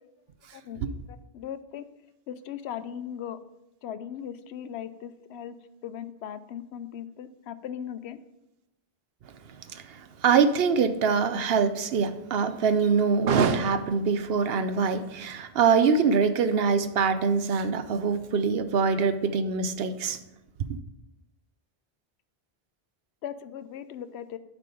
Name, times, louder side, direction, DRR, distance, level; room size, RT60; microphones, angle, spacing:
voice 1, 1.1-1.9 2.3-3.4 3.8-5.5 5.8-8.2 23.2-24.4, left 9 dB, 85° left, 12 dB, 0.8 m, -38 dB
voice 2, 9.7-20.2, right 5 dB, 70° right, 10 dB, 0.9 m, -24 dB
11.0 x 3.8 x 5.0 m, 0.89 s
omnidirectional pair, 1.1 m